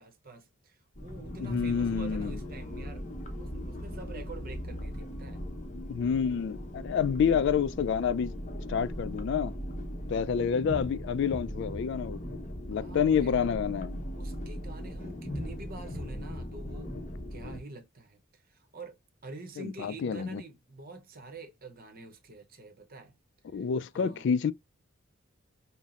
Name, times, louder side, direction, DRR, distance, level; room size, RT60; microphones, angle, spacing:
voice 1, 0.0-3.1 3.4-5.4 12.7-13.4 14.2-17.0 17.3-23.1 23.5-23.7 23.9-24.3, right 3 dB, 45° right, 0.8 m, -47 dB
sound 1, 1.0-17.6, equal, 35° left, 0.9 m, -38 dB
voice 2, 1.4-2.4 5.7-8.3 8.7-9.5 10.1-12.2 12.7-14.0 19.6-20.4 23.5-24.5, left 7 dB, 60° left, 0.3 m, -28 dB
5.6 x 2.0 x 2.4 m
head